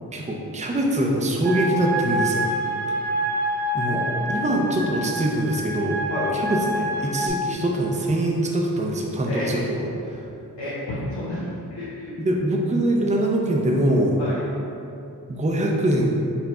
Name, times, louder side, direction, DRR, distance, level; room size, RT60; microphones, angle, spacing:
voice 1, 0.1-2.5 3.7-6.0 6.3-9.8 12.2-14.2 15.3-16.1, right 1 dB, 15° right, -1 dB, 0.6 m, -23 dB
sound 1, 1.4-7.3, right 1 dB, 65° right, 0.5 m, -27 dB
voice 2, 3.9-4.3 6.1-6.4 9.3-9.5 10.6-12.1 14.2-14.4, left 1 dB, 75° left, -9 dB, 0.9 m, -31 dB
4.3 x 2.2 x 4.2 m, 2.7 s
cardioid pair, 40°, 42 cm